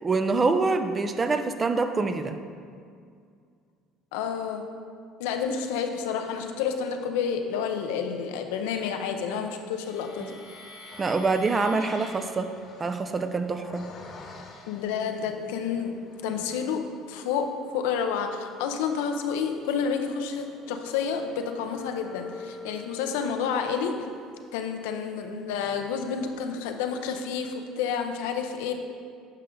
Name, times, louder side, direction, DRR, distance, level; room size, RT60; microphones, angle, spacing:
voice 1, 0.0-2.4 10.2-10.3 11.0-12.5 12.8-13.9, right 3 dB, 30° right, 8 dB, 0.6 m, -25 dB
voice 2, 4.1-4.7 5.2-10.4 14.7-16.0 16.2-24.0 24.5-28.7, left 6 dB, 85° left, 5 dB, 0.7 m, -30 dB
sound 1, 9.7-15.2 15.8-16.6 17.1-26.3, left 3 dB, 50° left, 1.1 m, -47 dB
9.9 x 5.6 x 3.8 m, 2.2 s
supercardioid pair, 85°, 0 cm